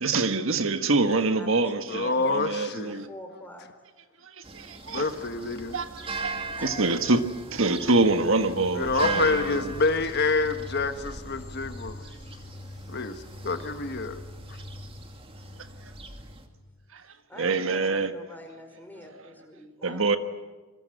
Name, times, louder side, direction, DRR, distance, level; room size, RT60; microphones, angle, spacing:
voice 1, 0.0-3.1 4.2-5.1 5.7-7.2 7.5-9.7 16.9-17.0 17.4-18.1 19.8-20.2, right 3 dB, 60° right, 1.5 m, -25 dB
voice 2, 0.9-2.3 2.8-3.7 6.0-6.1 6.5-6.9 17.0-20.2, left 1 dB, 10° left, 4.9 m, -45 dB
voice 3, 1.9-3.0 4.9-5.8 8.7-12.0 12.9-14.2, left 3 dB, 50° left, 1.4 m, -27 dB
sound 1, 4.4-16.5, right 3 dB, 25° right, 2.5 m, -39 dB
sound 2, 7.8-16.9, left 1 dB, 65° left, 5.6 m, -45 dB
28.0 x 23.0 x 7.9 m
head